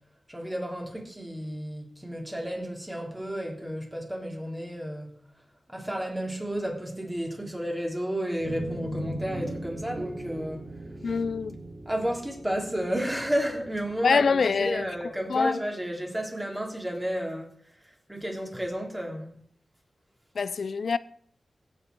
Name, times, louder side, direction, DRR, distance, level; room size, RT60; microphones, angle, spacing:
voice 1, 0.3-5.1 5.7-10.7 11.8-17.5 18.1-19.3, equal, 10° right, 3.5 m, -32 dB
sound 1, 8.4-15.0, right 1 dB, 65° right, 4.5 m, -39 dB
voice 2, 11.0-11.6 14.0-14.9 15.3-15.6 20.3-21.0, left 5 dB, 75° left, 0.5 m, -25 dB
16.5 x 7.8 x 4.6 m
cardioid pair, 60°, 0 cm